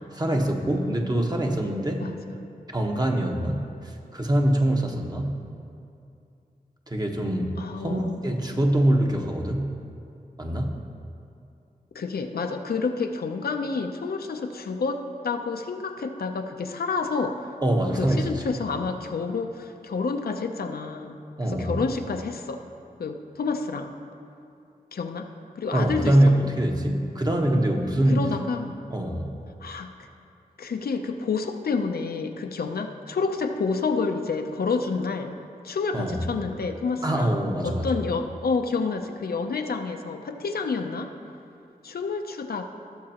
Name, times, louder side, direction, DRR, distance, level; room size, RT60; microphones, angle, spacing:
voice 1, 0.1-2.0 2.7-5.4 6.9-9.7 10.4-10.7 17.6-18.6 21.4-21.8 25.7-28.3 28.9-29.4 35.9-36.2 37.0-37.9, right 1 dB, 25° right, 1 dB, 1.1 m, -24 dB
voice 2, 7.6-8.1 8.5-8.6 11.9-17.5 18.0-22.6 23.0-24.0 24.9-26.3 28.1-28.9 29.6-29.9 30.6-35.3 35.6-41.1 41.8-42.6, left 4 dB, 80° left, 5 dB, 0.6 m, -29 dB
17.0 x 6.6 x 2.9 m, 2.5 s
cardioid pair, 55°, 16 cm